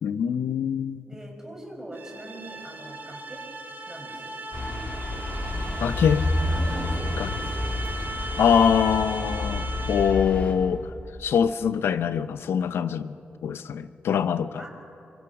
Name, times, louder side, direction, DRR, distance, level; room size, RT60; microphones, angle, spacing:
voice 1, 0.0-1.0 5.8-6.2 7.2-7.3 8.4-10.8 11.2-13.2 13.4-14.6, left 7 dB, 85° left, 13 dB, 0.7 m, -23 dB
voice 2, 1.1-3.4 3.9-4.4 6.0-6.1 6.5-7.5 14.6-14.7, right 1 dB, 10° right, 0 dB, 6.3 m, -42 dB
sound 1, 1.9-10.4, right 2 dB, 55° right, 5.0 m, -37 dB
sound 2, 4.5-10.5, left 2 dB, 35° left, 3.5 m, -29 dB
27.0 x 24.0 x 6.1 m, 2.9 s
cardioid pair, 85°, 4 cm